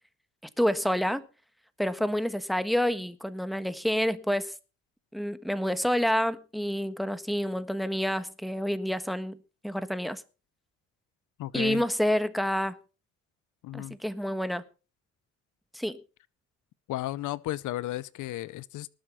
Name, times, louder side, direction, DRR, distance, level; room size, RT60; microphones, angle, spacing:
voice 1, 0.6-1.2 1.8-4.5 5.1-9.4 9.6-10.2 11.5-12.8 13.7-14.6 15.7-16.0, equal, ahead, 1.4 m, -28 dB
voice 2, 11.4-11.8 13.6-14.0 16.9-18.9, left 15 dB, 80° left, 0.7 m, -34 dB
19.0 x 7.8 x 5.7 m
cardioid pair, 90°, 30 cm